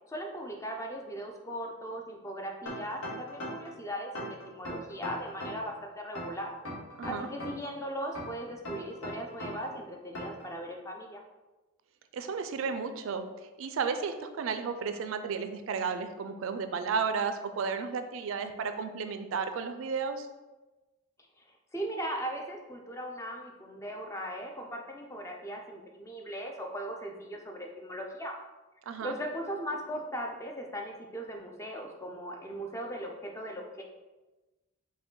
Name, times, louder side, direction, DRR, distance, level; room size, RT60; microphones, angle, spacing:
voice 1, 0.1-6.5 7.0-11.2 21.4-28.4 29.0-33.8, equal, 15° left, 1 dB, 0.4 m, -38 dB
sound 1, 2.7-3.7 4.2-5.7 6.2-7.7 8.2-9.7 10.2-10.5, equal, 80° left, 1.2 m, -39 dB
voice 2, 12.1-13.3 13.6-20.3 28.9-29.2, right 5 dB, 70° right, 8 dB, 0.3 m, -33 dB
4.8 x 2.2 x 3.7 m, 1.1 s
head